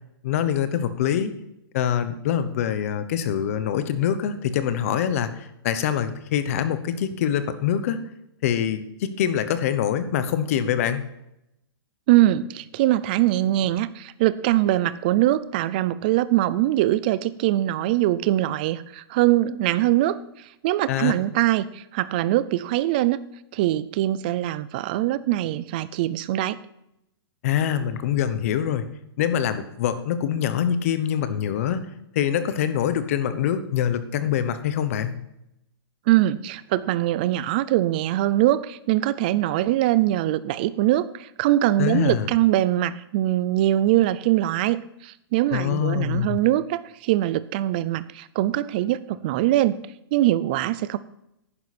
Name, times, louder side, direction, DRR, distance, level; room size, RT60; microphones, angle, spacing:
voice 1, 0.2-1.3 1.7-8.0 8.4-11.0 20.9-21.1 27.4-28.9 29.2-31.8 32.1-35.2 41.8-42.3 45.5-46.4, left 9 dB, 35° left, 11 dB, 1.0 m, -24 dB
voice 2, 12.1-20.2 20.6-23.2 23.5-26.6 36.1-44.8 45.0-49.8 50.1-51.0, right 14 dB, 20° right, 16 dB, 0.4 m, -22 dB
11.5 x 9.6 x 4.2 m, 0.83 s
hypercardioid pair, 175°, 13 cm